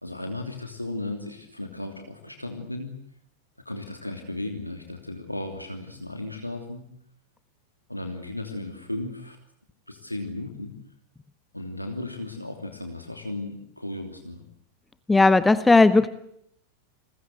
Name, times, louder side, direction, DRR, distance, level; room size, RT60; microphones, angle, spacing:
voice 1, 0.0-3.0 3.6-6.8 7.9-9.4 9.9-10.7 11.5-14.4, left 2 dB, 85° left, 5 dB, 3.1 m, -35 dB
voice 2, 15.1-16.1, left 3 dB, 10° left, 15 dB, 1.1 m, -16 dB
29.5 x 21.0 x 8.0 m, 0.72 s
figure-of-eight pair, 90°, 0 cm